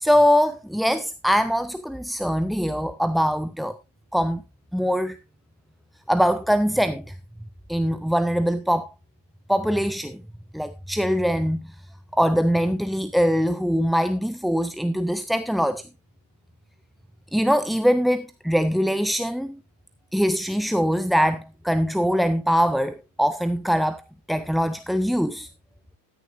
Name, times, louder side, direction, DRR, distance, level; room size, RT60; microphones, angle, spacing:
voice 1, 0.0-3.7 4.1-4.4 4.7-5.2 6.1-7.0 7.7-8.9 9.5-10.2 10.5-11.7 12.1-15.8 17.3-19.6 20.1-24.0 24.3-25.5, equal, ahead, 0.5 m, -22 dB
14.5 x 10.0 x 2.5 m
figure-of-eight pair, 90°, 0 cm